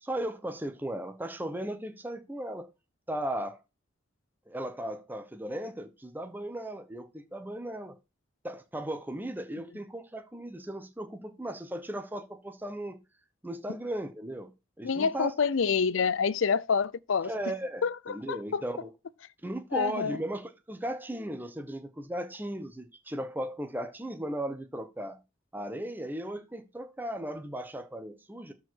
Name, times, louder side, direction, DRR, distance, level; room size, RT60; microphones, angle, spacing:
voice 1, 0.0-2.7 3.1-3.6 4.5-8.0 8.4-13.0 13.4-14.5 14.8-15.3 17.2-17.8 18.1-18.9 19.4-25.2 25.5-28.5, right 1 dB, 10° right, 0.9 m, -36 dB
voice 2, 14.8-17.3 17.8-18.6 19.7-20.2, left 5 dB, 75° left, 0.5 m, -27 dB
13.0 x 4.8 x 4.6 m
head